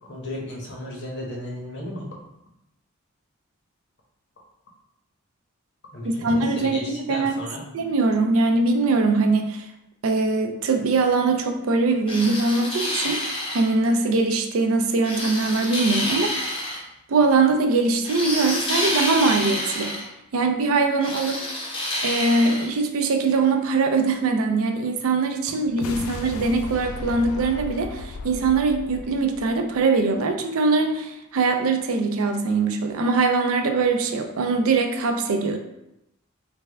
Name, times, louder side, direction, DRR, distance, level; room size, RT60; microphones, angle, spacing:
voice 1, 0.0-2.1 5.9-7.6, left 1 dB, 55° left, -2 dB, 0.8 m, -34 dB
voice 2, 6.0-7.4 7.7-9.7 10.0-13.2 13.5-16.8 17.1-20.0 20.3-21.4 22.0-35.6, right 3 dB, 75° right, 5 dB, 0.4 m, -22 dB
sound 1, 12.1-13.7 15.0-16.8 18.0-20.1 21.0-22.7, left 1 dB, 25° left, 0.6 m, -28 dB
sound 2, 25.6-30.2, left 3 dB, 75° left, 0.3 m, -36 dB
3.3 x 2.2 x 3.4 m, 0.86 s
head